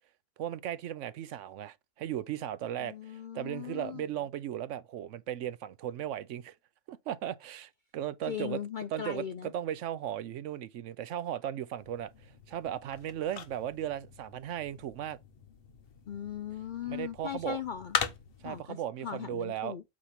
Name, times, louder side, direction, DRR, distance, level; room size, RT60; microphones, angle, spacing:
voice 1, 0.4-6.6 6.9-8.6 8.9-15.2 16.9-17.6 18.4-19.8, right 11 dB, 70° right, 0.9 m, -36 dB
voice 2, 2.8-4.0 8.3-9.5 16.1-18.0 18.4-18.8 19.0-19.8, left 9 dB, 65° left, 0.5 m, -38 dB
sound 1, 11.8-18.6, left 6 dB, 50° left, 1.0 m, -40 dB
8.5 x 3.0 x 5.8 m
omnidirectional pair, 1.4 m